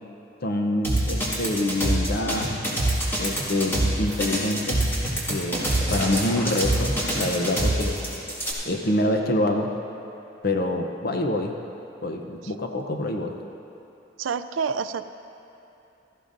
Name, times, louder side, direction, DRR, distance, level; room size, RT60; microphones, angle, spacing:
voice 1, 0.4-2.6 3.2-4.8 5.3-8.0 8.6-9.7 10.4-11.5 12.0-13.4, left 1 dB, 50° left, 3 dB, 0.7 m, -26 dB
sound 1, 0.8-8.5, right 1 dB, 10° left, 2.1 m, -25 dB
voice 2, 14.2-15.1, right 5 dB, 80° right, 11 dB, 0.4 m, -27 dB
16.5 x 13.5 x 2.6 m, 3.0 s
head